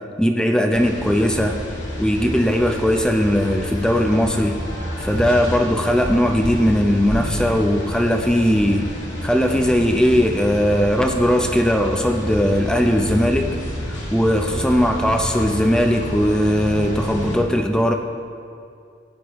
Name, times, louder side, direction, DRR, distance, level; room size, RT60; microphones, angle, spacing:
voice 1, 0.2-1.6 2.0-4.6 5.0-8.9 9.2-13.5 13.9-17.9, equal, 5° left, 4 dB, 0.5 m, -19 dB
Plant Nursery Greenhouse Customers Construction, 0.7-17.4, equal, 65° left, 2.3 m, -29 dB
15.5 x 9.8 x 3.0 m, 2.4 s
head